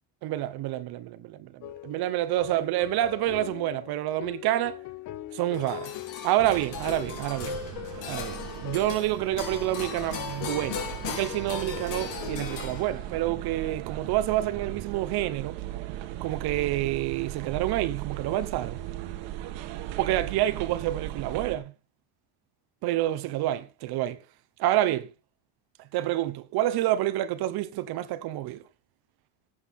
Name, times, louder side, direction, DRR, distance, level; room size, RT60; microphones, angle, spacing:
voice 1, 0.2-4.8 5.3-5.9 6.2-7.6 8.1-15.6 16.2-18.8 20.0-21.7 22.8-24.2 24.6-25.1 25.9-28.6, right 14 dB, 55° right, 1.1 m, -28 dB
sound 1, 1.6-12.8, left 15 dB, 40° left, 0.7 m, -42 dB
sound 2, 5.5-13.2, left 7 dB, 75° left, 4.4 m, -38 dB
sound 3, 6.4-21.6, right 13 dB, 75° right, 1.6 m, -38 dB
17.5 x 8.3 x 3.7 m
cardioid pair, 175°, 45 cm